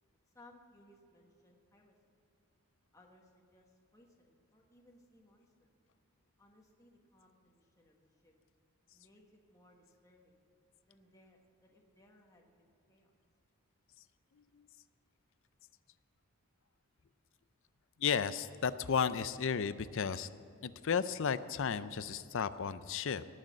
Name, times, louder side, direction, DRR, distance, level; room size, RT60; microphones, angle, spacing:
voice 1, 0.3-1.9 2.9-5.7 6.4-8.3 8.9-10.4 10.9-13.1, left 1 dB, 15° left, 0 dB, 1.3 m, -64 dB
voice 2, 18.0-20.3 20.6-23.2, left 6 dB, 60° left, 14 dB, 0.5 m, -33 dB
18.0 x 6.4 x 7.3 m, 2.7 s
head